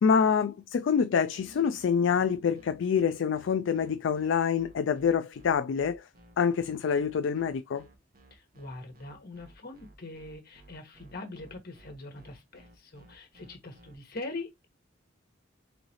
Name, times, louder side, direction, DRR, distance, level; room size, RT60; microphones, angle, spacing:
voice 1, 0.0-6.0 6.4-7.9, left 6 dB, 70° left, 0.3 m, -26 dB
sound 1, 1.3-13.9, right 1 dB, 50° right, 1.5 m, -57 dB
voice 2, 8.3-14.7, left 2 dB, 55° left, 1.5 m, -42 dB
4.0 x 3.9 x 3.1 m
head